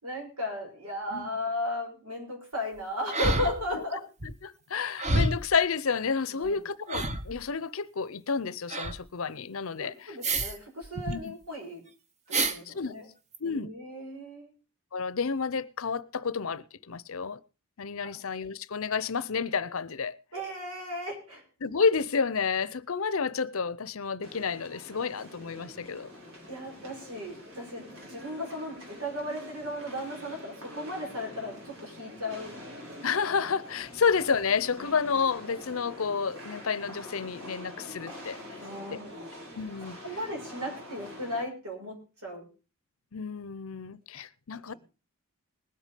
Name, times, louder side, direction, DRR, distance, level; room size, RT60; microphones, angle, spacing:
voice 1, 0.0-4.0 6.3-6.6 9.8-11.8 12.4-13.1 13.4-14.5 18.0-18.2 20.3-21.4 26.5-32.5 34.7-34.9 38.6-39.3 40.0-42.5 44.7-44.8, left 1 dB, 85° right, 6.4 m, -36 dB
sound 1, 3.1-3.9 4.2-4.3 5.0-5.6 6.4-6.5 6.9-7.4 8.7-9.0 10.2-10.6 10.8-11.1 12.3-12.6 13.3-13.4, right 2 dB, 30° right, 1.0 m, -28 dB
voice 2, 4.2-10.2 11.1-11.3 12.7-12.9 13.4-13.7 14.9-17.4 17.8-20.2 21.6-26.1 33.0-38.4 39.6-40.0 43.1-44.7, left 5 dB, 65° left, 0.7 m, -30 dB
sound 2, 24.2-41.4, left 1 dB, 60° right, 5.1 m, -46 dB
20.0 x 8.3 x 5.1 m
head